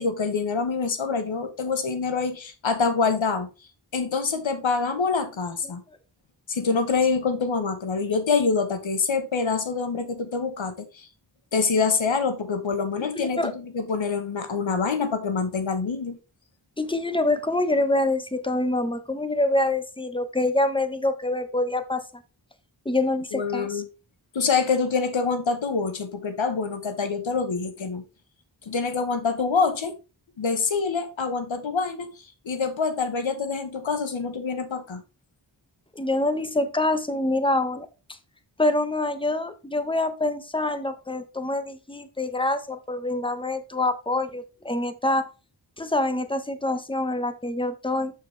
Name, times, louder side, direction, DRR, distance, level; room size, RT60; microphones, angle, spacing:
voice 1, 0.0-3.5 3.9-5.8 6.5-11.1 11.5-16.2 23.3-23.9 24.3-28.0 28.7-29.9 30.4-32.1 32.4-35.0, left 5 dB, 85° left, 1.3 m, -26 dB
voice 2, 13.1-13.5 16.8-22.0 22.8-23.8 35.9-37.9 38.6-45.2 45.8-48.1, left 2 dB, 10° left, 1.2 m, -25 dB
6.9 x 6.6 x 3.4 m
cardioid pair, 45°, 45 cm